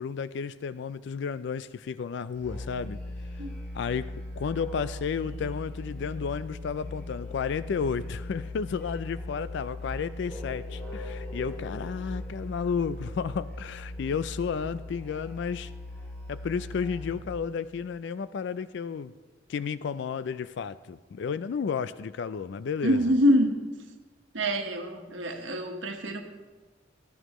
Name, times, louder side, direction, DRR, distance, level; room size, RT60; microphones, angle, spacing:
voice 1, 0.0-3.0 3.7-15.7 16.3-19.1 19.5-23.0, left 6 dB, 65° left, 15 dB, 0.3 m, -32 dB
Musical instrument, 2.3-17.4, left 1 dB, 10° left, 3.5 m, -39 dB
voice 2, 22.8-23.6 24.3-26.2, equal, 85° right, 4 dB, 1.3 m, -25 dB
17.5 x 13.0 x 3.1 m, 1.3 s
head